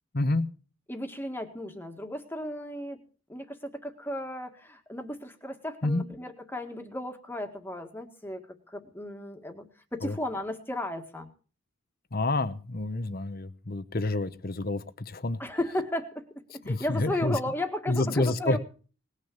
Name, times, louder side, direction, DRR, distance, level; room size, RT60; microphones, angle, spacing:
voice 1, 0.1-0.5 5.8-6.0 10.0-10.1 12.1-15.4 16.6-17.4 17.9-18.6, left 2 dB, 45° left, 13 dB, 1.0 m, -28 dB
voice 2, 0.9-3.0 3.3-9.6 9.9-11.3 15.4-16.3 16.5-18.6, left 1 dB, 10° left, 5 dB, 1.8 m, -35 dB
19.5 x 6.6 x 8.6 m, 0.39 s
head